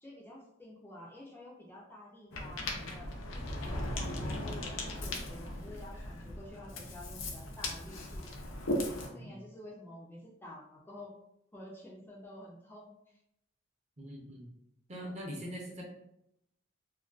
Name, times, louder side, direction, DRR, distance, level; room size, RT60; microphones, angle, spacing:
voice 1, 0.0-8.2 8.8-11.1 11.5-13.2, left 1 dB, 10° left, -4 dB, 0.4 m, -50 dB
Ocean, 2.3-9.1, left 1 dB, 85° left, 0.5 m, -38 dB
voice 2, 8.9-9.4 14.0-14.5 14.9-15.8, equal, 35° right, -2 dB, 0.6 m, -43 dB
2.4 x 2.2 x 2.3 m, 0.80 s
head